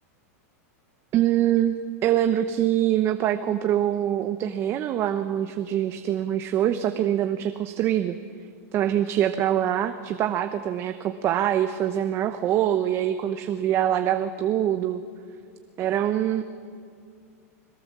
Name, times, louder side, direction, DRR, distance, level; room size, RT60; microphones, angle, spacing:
voice 1, 1.1-1.7 2.0-8.2 8.7-15.0 15.8-16.4, right 11 dB, 30° right, 9 dB, 0.8 m, -24 dB
21.5 x 17.0 x 7.4 m, 2.2 s
supercardioid pair, 145°, 8 cm